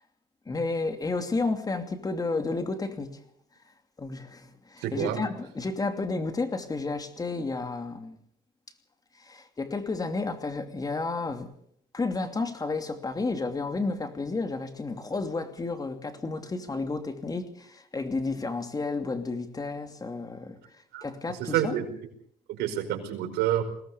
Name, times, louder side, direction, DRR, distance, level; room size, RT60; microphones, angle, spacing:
voice 1, 0.5-3.2 4.0-8.2 9.2-11.5 11.9-20.6 21.0-21.8, left 3 dB, 20° left, 2.8 m, -31 dB
voice 2, 4.8-5.2 20.9-21.8 22.5-23.6, right 11 dB, 90° right, 4.9 m, -28 dB
21.5 x 18.0 x 7.0 m
cardioid pair, 110°, 17 cm